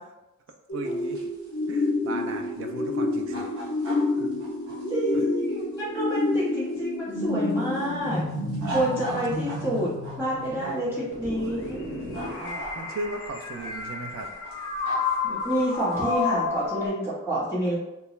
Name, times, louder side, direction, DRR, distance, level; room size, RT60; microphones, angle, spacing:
sound 1, 0.7-16.9, left 3 dB, 60° left, 0.4 m, -29 dB
voice 1, 0.7-1.3 1.7-3.5 4.2-4.4 5.1-5.3 8.4-8.8 9.1-9.2 10.6-10.8 11.8-14.3, right 3 dB, 60° right, 4 dB, 0.3 m, -38 dB
sound 2, 0.8-6.9 7.3-10.1 11.2-11.7 12.0-13.1 13.5-16.2, right 1 dB, 90° right, 0.9 m, -39 dB
voice 2, 4.9-8.2 8.7-11.8 15.2-17.8, right 1 dB, 10° right, -10 dB, 0.9 m, -28 dB
sound 3, 11.1-16.9, left 1 dB, 35° right, 1.2 m, -40 dB
2.2 x 2.1 x 3.0 m, 0.97 s
head